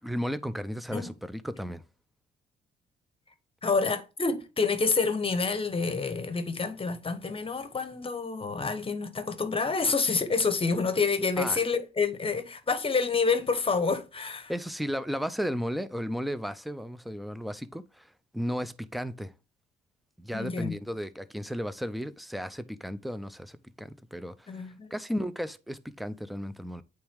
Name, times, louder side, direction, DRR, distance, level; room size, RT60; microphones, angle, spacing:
voice 1, 0.0-1.8 11.4-11.6 14.5-19.3 20.2-26.8, equal, ahead, 0.5 m, -34 dB
voice 2, 3.6-14.5 20.3-20.8 24.5-24.9, left 4 dB, 25° left, 1.0 m, -28 dB
8.5 x 3.6 x 3.5 m
cardioid pair, 90°, 20 cm